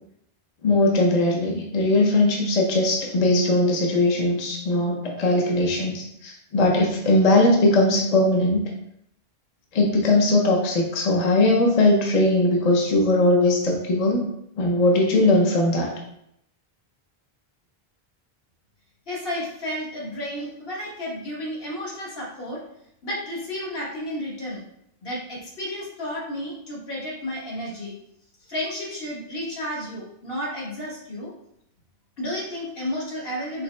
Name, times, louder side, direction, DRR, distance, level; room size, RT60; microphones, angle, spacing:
voice 1, 0.6-8.6 9.7-14.2 14.6-15.9, left 2 dB, 45° left, 0 dB, 0.6 m, -20 dB
voice 2, 19.1-22.6 23.0-24.6 25.0-27.9 28.4-31.3 32.2-33.6, left 1 dB, 65° left, -5 dB, 1.4 m, -32 dB
4.1 x 2.9 x 3.2 m, 0.78 s
omnidirectional pair, 1.1 m